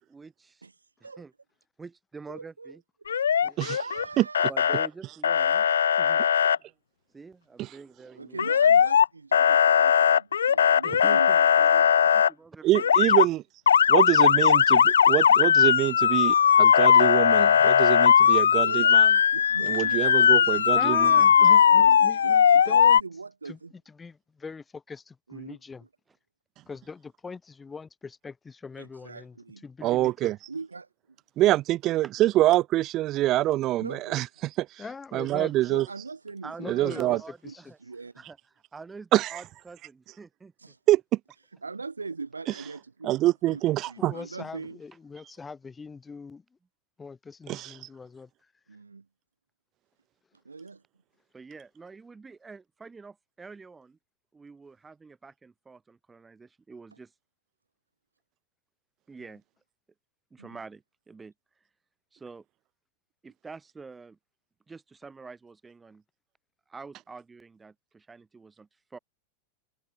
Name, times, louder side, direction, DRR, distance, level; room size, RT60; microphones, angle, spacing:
voice 1, 0.1-0.6 1.2-1.3 1.8-2.8 3.4-3.8 4.5-5.7 6.0-6.2 7.1-8.4 10.8-12.9 19.7-19.8 36.4-37.8 38.2-38.4 38.7-40.5 51.3-54.0 54.3-57.1 59.1-59.4 60.3-61.3 62.1-62.4 63.2-64.2 64.7-66.0 66.7-69.0, right 4 dB, 15° right, 3.6 m, -46 dB
voice 2, 0.6-1.2 2.3-4.5 8.2-11.9 18.6-19.0 19.3-23.7 25.3-25.6 28.7-29.7 30.5-31.2 33.8-34.2 35.7-38.2 40.6-40.8 41.6-44.8 48.7-49.1 50.4-50.8 59.2-59.3 60.4-60.6, right 4 dB, 80° right, 1.6 m, -41 dB
Motor vehicle (road) / Siren, 3.1-4.0 4.3-4.9 5.2-6.6 8.4-9.1 9.3-12.3 12.7-13.3 13.7-23.0, left 8 dB, 70° left, 0.3 m, -19 dB
voice 3, 12.6-13.4 13.9-19.1 19.7-21.1 29.8-30.4 31.4-34.2 34.6-34.7 35.1-35.8 36.7-37.2 39.1-39.4 40.9-41.2 43.0-44.1 47.5-47.7, right 15 dB, 35° right, 0.7 m, -25 dB
voice 4, 20.7-23.0 23.5-23.6 24.0-25.8 26.7-29.3 29.6-30.3 34.8-35.5 36.6-37.6 44.0-46.4 47.0-48.3, left 4 dB, 15° left, 1.9 m, -41 dB
figure-of-eight pair, 90°, 0 cm